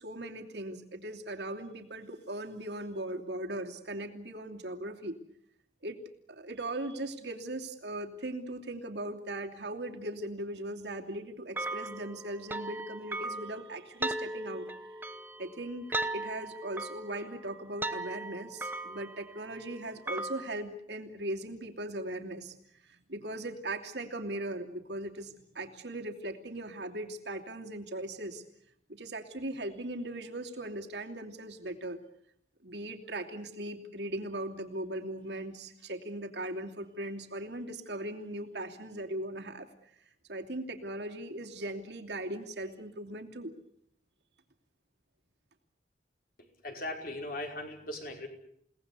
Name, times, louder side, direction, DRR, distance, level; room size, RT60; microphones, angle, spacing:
voice 1, 0.0-5.2 5.8-6.0 6.3-14.7 15.4-15.9 16.1-22.5 22.9-28.4 28.9-32.0 32.6-39.7 40.3-43.5, right 1 dB, 70° right, 3 dB, 2.9 m, -39 dB
sound 1, 11.6-20.5, right 2 dB, 10° right, 1.1 m, -38 dB
voice 2, 46.6-48.3, left 1 dB, 50° left, 3 dB, 5.4 m, -38 dB
29.5 x 18.5 x 8.3 m, 0.70 s
head